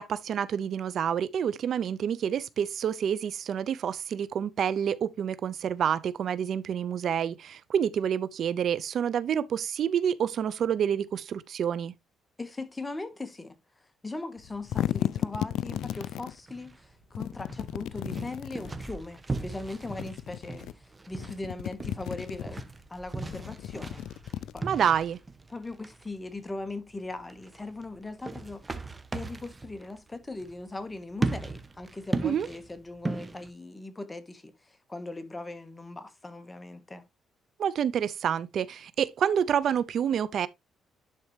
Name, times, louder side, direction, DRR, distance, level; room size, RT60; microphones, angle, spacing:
voice 1, 0.0-11.9 24.6-25.2 32.2-32.5 37.6-40.5, right 8 dB, 65° right, 0.5 m, -28 dB
voice 2, 12.4-13.6 14.0-22.6 22.9-24.0 24.5-24.7 25.5-28.6 29.1-37.0, left 2 dB, 20° left, 1.4 m, -39 dB
sound 1, 14.4-16.3 17.1-18.8 19.7-20.7 21.1-22.6 23.2-25.0, left 12 dB, 80° left, 0.4 m, -34 dB
sound 2, 15.6-33.5, right 2 dB, 20° right, 1.1 m, -38 dB
11.0 x 4.2 x 3.2 m
cardioid pair, 90°, 0 cm